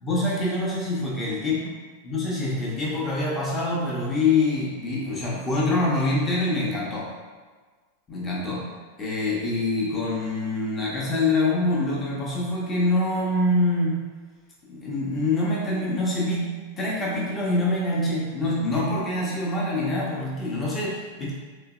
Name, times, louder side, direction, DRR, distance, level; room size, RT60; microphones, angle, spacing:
voice 1, 0.0-1.6 2.0-7.1 8.1-8.6 9.0-14.0 14.7-21.3, left 2 dB, 20° left, -6 dB, 0.9 m, -25 dB
3.7 x 3.1 x 2.4 m, 1.4 s
figure-of-eight pair, 90°, 0 cm